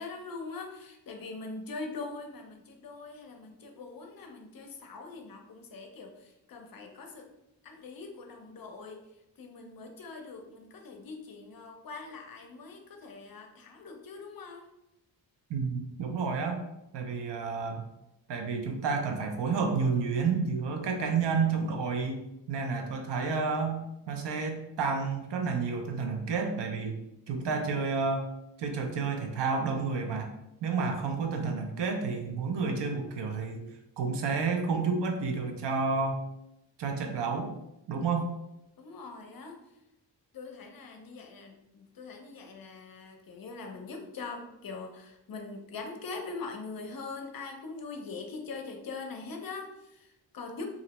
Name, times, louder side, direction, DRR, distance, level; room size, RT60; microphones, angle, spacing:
voice 1, 0.0-7.3 7.6-9.0 9.4-14.7 38.8-39.6 40.3-50.7, left 3 dB, 50° left, 3 dB, 0.6 m, -42 dB
voice 2, 15.5-16.6 16.9-17.8 18.3-27.0 27.3-28.3 28.6-30.3 30.6-33.6 34.0-36.2 36.8-37.5 37.9-38.3, right 4 dB, 65° right, 4 dB, 0.6 m, -30 dB
2.5 x 2.0 x 2.8 m, 0.88 s
cardioid pair, 65°, 46 cm